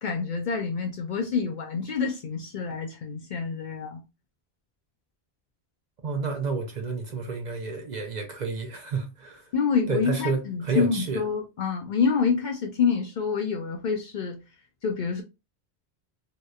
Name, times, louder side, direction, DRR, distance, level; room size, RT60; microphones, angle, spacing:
voice 1, 0.0-4.0 9.5-14.4 14.8-15.2, left 5 dB, 60° left, 0.6 m, -27 dB
voice 2, 6.0-9.5 9.9-11.2, right 4 dB, 50° right, 0.6 m, -30 dB
2.8 x 2.0 x 2.3 m
omnidirectional pair, 1.1 m